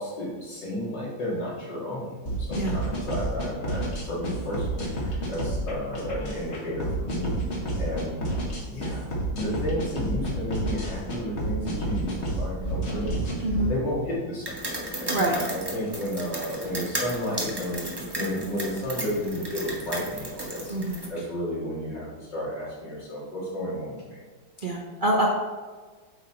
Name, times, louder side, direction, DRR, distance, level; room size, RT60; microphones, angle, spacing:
voice 1, 0.0-2.1 2.4-7.4 7.8-8.3 8.7-9.1 9.3-14.6 15.0-20.7 21.1-24.2, equal, 65° left, -7 dB, 2.9 m, -32 dB
sound 1, 2.3-13.6, right 1 dB, 40° left, 1.5 m, -30 dB
voice 2, 13.4-13.7 14.9-15.4 20.7-21.0 24.6-25.3, right 1 dB, 50° right, -2 dB, 0.6 m, -26 dB
sound 2, 14.4-21.1, right 1 dB, 20° right, 0.7 m, -34 dB
7.9 x 4.1 x 4.4 m, 1.4 s
omnidirectional pair, 2.1 m